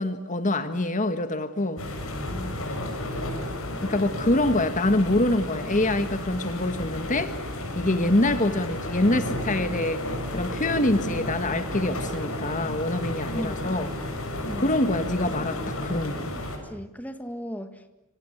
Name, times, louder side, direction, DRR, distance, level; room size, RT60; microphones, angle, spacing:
voice 1, 0.0-1.8 3.8-7.3 7.7-10.0 10.3-13.9 14.6-16.3, left 1 dB, 35° left, 10 dB, 1.5 m, -25 dB
sound 1, 1.8-16.6, left 1 dB, 75° left, 6.8 m, -32 dB
voice 2, 13.3-13.8 14.5-14.8 16.6-17.9, equal, 5° left, 8 dB, 1.8 m, -36 dB
27.0 x 26.0 x 8.1 m, 0.91 s
head